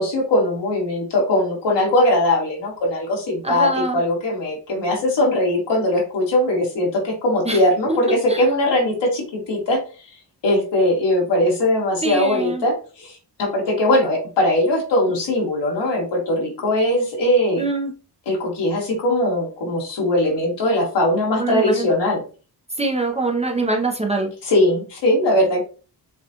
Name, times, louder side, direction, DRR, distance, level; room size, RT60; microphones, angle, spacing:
voice 1, 0.0-10.1 10.4-17.6 18.3-22.2 24.4-25.6, left 1 dB, 80° left, -2 dB, 2.1 m, -20 dB
voice 2, 3.4-4.0 7.5-7.6 7.9-8.0 8.3-8.4 12.0-12.6 17.6-17.9 21.4-21.9 22.8-24.3, right 3 dB, 15° right, 1 dB, 0.7 m, -23 dB
6.8 x 2.4 x 2.8 m, 0.37 s
wide cardioid pair, 145°, 41 cm